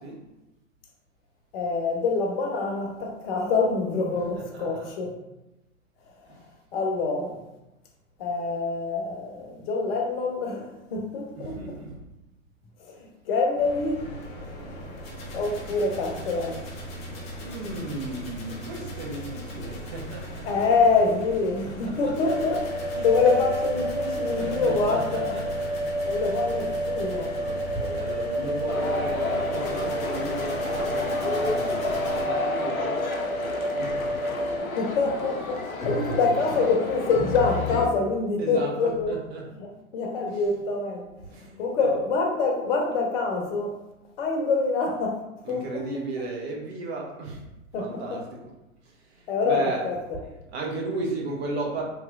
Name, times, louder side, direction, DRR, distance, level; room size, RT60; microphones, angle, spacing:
voice 1, 1.5-5.1 6.7-7.4 8.2-11.6 12.9-14.0 14.7-14.8 15.3-16.6 20.5-22.7 23.0-25.4 26.1-27.3 27.7-27.8 34.6-39.2 39.6-41.0 41.6-43.8 44.2-45.2 45.5-46.0 47.7-48.2 49.3-49.9, left 4 dB, 45° left, 0.7 m, -25 dB
voice 2, 4.2-4.9 6.3-6.4 11.3-11.9 17.4-20.5 21.6-22.5 22.9-23.5 24.4-25.7 26.1-26.7 27.4-34.3 38.4-39.5 40.2-40.5 41.3-42.0 45.4-47.4 47.8-48.4 49.1-50.0 50.5-51.8, right 2 dB, 50° right, 0.8 m, -35 dB
sound 1, 13.6-32.2, equal, 15° left, 0.5 m, -39 dB
sound 2, 22.2-34.6, equal, 30° right, 1.1 m, -30 dB
sound 3, 28.7-37.9, left 3 dB, 90° left, 0.6 m, -31 dB
3.0 x 3.0 x 2.4 m
figure-of-eight pair, 110°, 41 cm